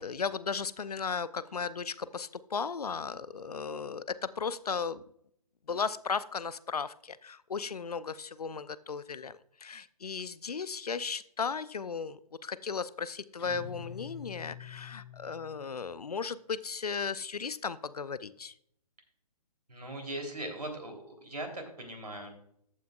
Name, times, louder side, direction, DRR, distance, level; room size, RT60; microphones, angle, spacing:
voice 1, 0.0-5.0 5.7-18.5, left 5 dB, 70° left, 17 dB, 0.6 m, -36 dB
Guitar, 13.4-16.0, left 7 dB, 35° left, 3.8 m, -46 dB
voice 2, 19.7-20.9 21.2-22.3, right 1 dB, 75° right, 3 dB, 3.4 m, -39 dB
14.0 x 9.2 x 2.4 m, 0.70 s
figure-of-eight pair, 135°, 20 cm